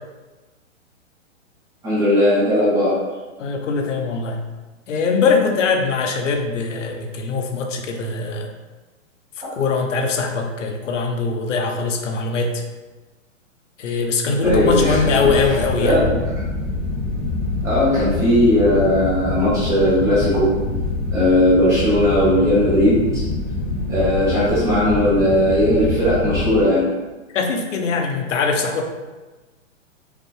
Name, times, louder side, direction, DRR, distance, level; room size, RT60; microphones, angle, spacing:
voice 1, 1.8-3.0 14.4-15.5 15.8-16.2 17.6-20.5 21.1-23.2 23.9-26.8, left 1 dB, 10° right, -9 dB, 0.4 m, -17 dB
voice 2, 3.4-4.4 4.9-8.5 9.6-12.6 13.8-16.0 27.3-28.9, left 4 dB, 70° left, 3 dB, 0.8 m, -21 dB
sound 1, 14.4-26.6, left 2 dB, 35° left, 0.9 m, -25 dB
4.9 x 2.2 x 3.1 m, 1.2 s
hypercardioid pair, 140°, 39 cm